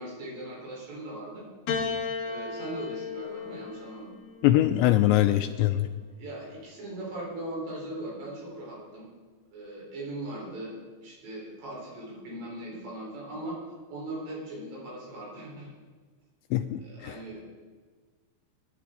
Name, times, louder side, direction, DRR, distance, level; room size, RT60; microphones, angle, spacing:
voice 1, 0.0-1.5 2.2-4.1 6.2-9.1 9.5-10.7 11.0-13.6 13.9-15.7 16.8-17.4, right 1 dB, 65° right, -4 dB, 6.8 m, -39 dB
Piano, 1.7-6.2 7.2-7.9, left 5 dB, 55° left, 2.9 m, -36 dB
voice 2, 4.4-5.9 16.5-17.4, left 14 dB, 85° left, 8 dB, 2.6 m, -23 dB
23.0 x 11.5 x 4.0 m, 1.4 s
omnidirectional pair, 5.5 m